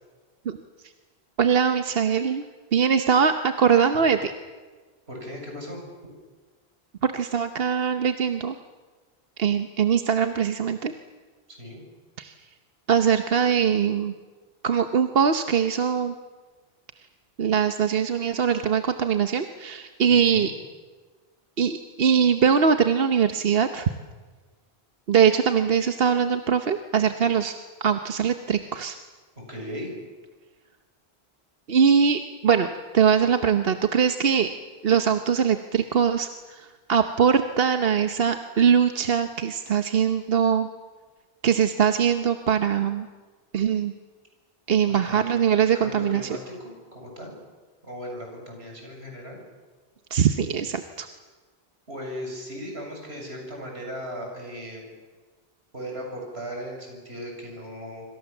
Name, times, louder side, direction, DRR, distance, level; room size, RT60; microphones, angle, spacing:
voice 1, 1.4-2.4 2.7-4.3 7.0-8.5 9.4-10.9 12.2-12.3 12.9-14.1 14.6-16.1 17.4-20.5 21.6-23.9 25.1-27.5 27.8-29.0 31.7-32.7 32.9-34.6 34.8-40.7 41.4-43.1 43.5-43.9 44.7-46.3 50.1-51.1, right 7 dB, 70° right, 8 dB, 1.2 m, -22 dB
voice 2, 5.1-5.8 11.5-11.8 20.1-20.5 29.5-29.9 44.9-45.2 45.7-47.3 47.8-49.4 51.9-54.9 55.7-58.0, equal, 90° right, 0 dB, 7.8 m, -37 dB
26.5 x 26.0 x 7.2 m, 1.4 s
omnidirectional pair, 1.0 m